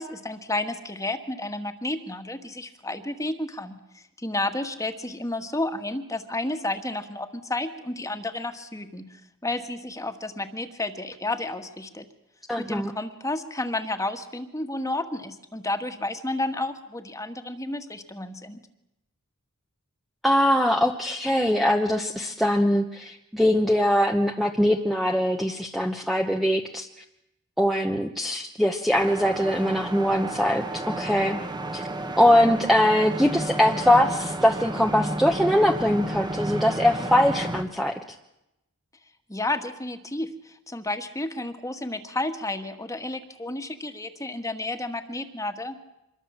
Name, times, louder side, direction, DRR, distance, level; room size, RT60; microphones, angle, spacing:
voice 1, 0.0-9.0 9.4-12.0 12.6-18.6 39.3-45.7, left 2 dB, 15° left, 7 dB, 1.6 m, -31 dB
voice 2, 12.5-12.9 20.2-26.9 27.6-31.4 31.7-31.9 32.2-38.0, left 1 dB, ahead, 2 dB, 1.0 m, -22 dB
sound 1, 28.9-37.6, right 1 dB, 20° right, 1.3 m, -32 dB
25.5 x 22.0 x 7.4 m, 0.89 s
head